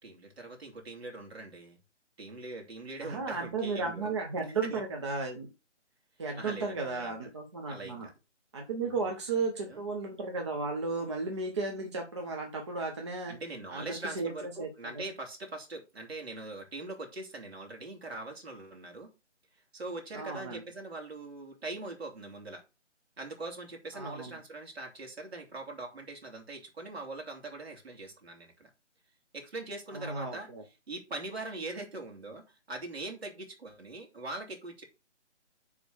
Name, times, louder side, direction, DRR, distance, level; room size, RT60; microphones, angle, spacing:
voice 1, 0.0-1.8 2.2-4.8 6.3-7.3 7.7-8.1 9.7-9.8 13.3-19.1 19.7-22.6 23.2-28.7 29.3-30.5 30.9-34.8, right 2 dB, 55° right, 2 dB, 3.1 m, -42 dB
voice 2, 3.0-5.5 6.2-8.1 8.5-13.3 13.7-14.7 14.9-15.0 20.1-20.6 23.9-24.3 29.9-30.6, right 3 dB, 25° right, 1 dB, 0.9 m, -34 dB
5.3 x 4.9 x 6.4 m, 0.27 s
figure-of-eight pair, 155°, 36 cm